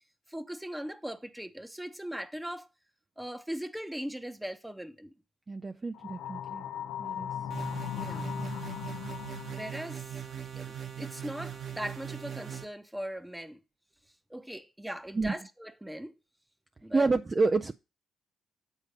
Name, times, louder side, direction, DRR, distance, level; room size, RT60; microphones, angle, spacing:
voice 1, 0.3-2.7 3.2-5.1 7.9-8.4 9.5-10.1 10.6-13.6 14.3-16.1 16.8-17.0, equal, 5° right, 0.9 m, -39 dB
voice 2, 5.5-6.6 7.0-7.3 15.1-15.3 16.9-17.7, right 3 dB, 25° right, 0.4 m, -28 dB
sound 1, 5.9-9.9, left 9 dB, 85° left, 0.5 m, -38 dB
sound 2, 7.5-12.6, right 9 dB, 55° right, 1.2 m, -40 dB
8.2 x 4.1 x 5.4 m
cardioid pair, 90°, 0 cm